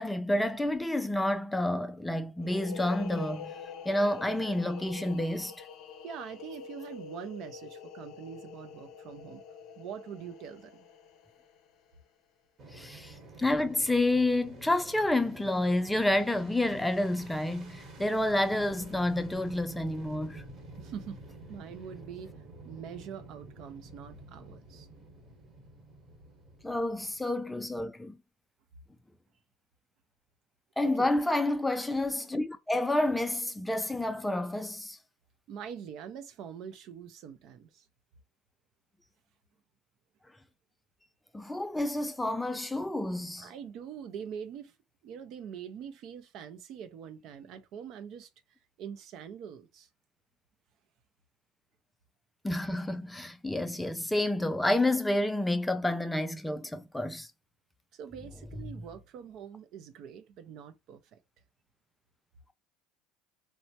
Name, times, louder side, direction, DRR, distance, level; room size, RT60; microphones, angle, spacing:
voice 1, 0.0-3.5 3.9-5.7 12.7-20.4 26.6-28.2 30.8-35.0 41.3-43.5 52.4-57.3, left 1 dB, 5° left, 0.3 m, -29 dB
sound 1, 2.4-11.9, left 6 dB, 55° left, 0.5 m, -46 dB
voice 2, 6.0-9.4 9.8-10.9 20.8-21.2 21.5-22.3 22.6-24.9 30.8-31.1 35.5-37.9 43.4-44.8 45.0-48.3 48.8-49.9 57.9-61.2, right 8 dB, 55° right, 0.5 m, -44 dB
Fixed-wing aircraft airplane, 12.6-27.8, right 2 dB, 40° right, 1.1 m, -49 dB
3.2 x 2.1 x 2.7 m
supercardioid pair, 115°, 0 cm